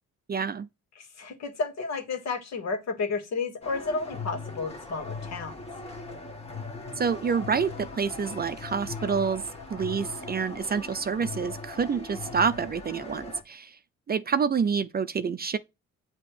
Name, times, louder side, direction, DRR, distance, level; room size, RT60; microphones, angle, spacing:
voice 1, 0.3-0.7 7.0-9.4 9.7-13.8 14.1-15.6, right 6 dB, 30° right, 0.5 m, -27 dB
voice 2, 1.0-5.6, left 4 dB, 60° left, 1.8 m, -32 dB
sound 1, 3.6-13.4, left 3 dB, 20° left, 1.5 m, -39 dB
7.6 x 3.0 x 4.9 m
cardioid pair, 90°, 30 cm